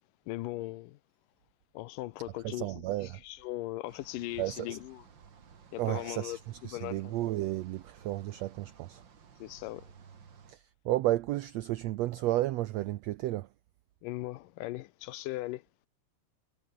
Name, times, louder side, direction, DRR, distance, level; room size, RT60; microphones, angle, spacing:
voice 1, 0.3-1.0 1.7-5.1 5.7-7.1 9.4-9.9 14.0-15.9, left 17 dB, 85° left, 2.4 m, -39 dB
voice 2, 2.4-3.2 4.4-4.8 5.8-6.4 6.6-9.0 10.5-13.5, right 15 dB, 85° right, 1.5 m, -32 dB
sound 1, 3.9-10.5, right 6 dB, 40° right, 2.3 m, -56 dB
omnidirectional pair, 3.8 m